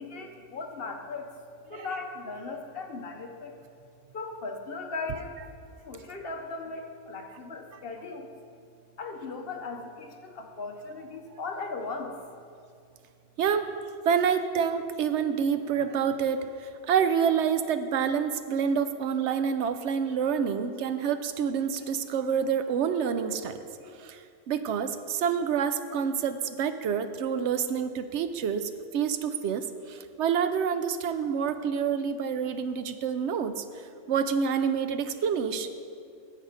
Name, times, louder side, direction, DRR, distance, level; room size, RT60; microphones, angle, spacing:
voice 1, 0.0-1.3 1.7-3.5 4.1-5.3 5.9-8.3 9.0-12.1, left 3 dB, 55° left, 4 dB, 1.0 m, -37 dB
voice 2, 13.4-13.7 14.1-23.6 24.0-24.2 24.5-33.6 34.1-35.7, right 7 dB, 70° right, 10 dB, 0.8 m, -27 dB
10.5 x 7.5 x 5.0 m, 2.4 s
omnidirectional pair, 1.3 m